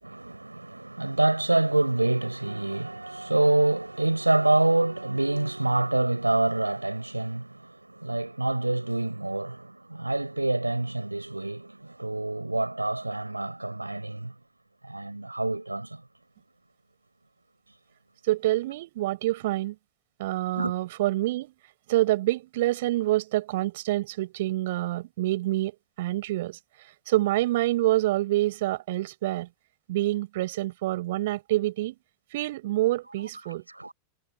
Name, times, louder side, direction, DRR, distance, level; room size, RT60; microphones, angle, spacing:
voice 1, 0.0-14.3 14.8-16.0 20.6-20.7 33.2-33.3 33.7-33.9, right 2 dB, 85° right, 5.3 m, -26 dB
voice 2, 18.3-19.8 20.2-21.5 21.9-25.7 26.0-26.6 27.1-29.5 29.9-31.9 32.3-33.6, right 16 dB, 55° right, 7.2 m, -26 dB
figure-of-eight pair, 90°, 0 cm